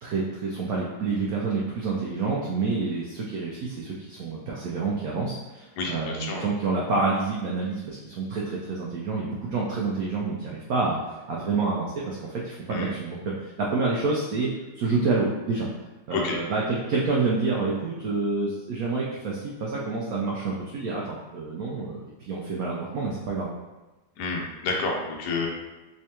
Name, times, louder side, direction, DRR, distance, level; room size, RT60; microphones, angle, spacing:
voice 1, 0.0-11.0 11.3-14.5 14.8-15.7 16.1-23.5, right 3 dB, 80° right, -4 dB, 0.8 m, -28 dB
voice 2, 5.8-6.5 12.7-12.9 16.1-16.4 24.2-25.5, left 3 dB, 65° left, 0 dB, 1.1 m, -29 dB
3.6 x 3.3 x 2.9 m, 1.1 s
omnidirectional pair, 2.2 m